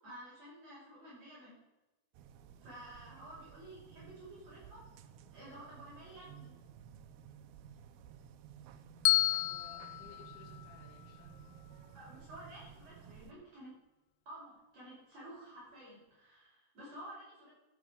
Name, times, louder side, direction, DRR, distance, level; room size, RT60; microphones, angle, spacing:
voice 1, 0.0-1.6 2.6-4.8 5.3-6.5 11.9-13.7 14.3-17.5, right 1 dB, 40° right, -8 dB, 6.4 m, -52 dB
sound 1, 2.1-13.3, right 8 dB, 80° right, 2.7 m, -55 dB
Bell, 9.1-11.2, left 18 dB, 90° left, 2.0 m, -32 dB
voice 2, 9.3-11.5, left 3 dB, 70° left, 0 dB, 4.1 m, -59 dB
14.5 x 8.5 x 5.2 m, 1.0 s
omnidirectional pair, 4.6 m